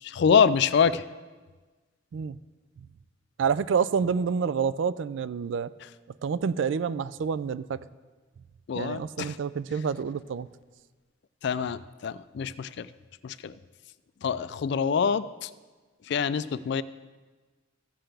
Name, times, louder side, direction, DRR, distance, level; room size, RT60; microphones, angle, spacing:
voice 1, 0.0-1.0 8.7-9.4 11.4-12.9 13.2-13.5 14.2-15.5 16.1-16.8, left 6 dB, 55° left, 16 dB, 0.3 m, -25 dB
voice 2, 3.4-5.7 6.2-7.8 8.7-10.5, right 6 dB, 65° right, 17 dB, 0.3 m, -28 dB
14.5 x 7.6 x 3.4 m, 1.3 s
head